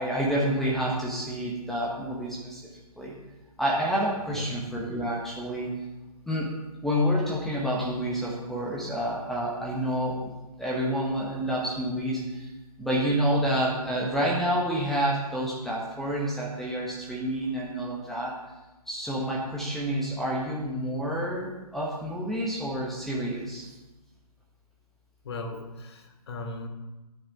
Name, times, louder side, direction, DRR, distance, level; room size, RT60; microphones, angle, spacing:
voice 1, 0.0-2.6 3.0-3.2 3.6-5.8 6.3-6.5 6.8-12.5 12.8-18.3 18.9-23.7, equal, ahead, -5 dB, 1.2 m, -28 dB
voice 2, 25.2-26.7, left 2 dB, 40° left, 4 dB, 1.8 m, -37 dB
10.5 x 8.7 x 5.9 m, 1.1 s
figure-of-eight pair, 140°, 20 cm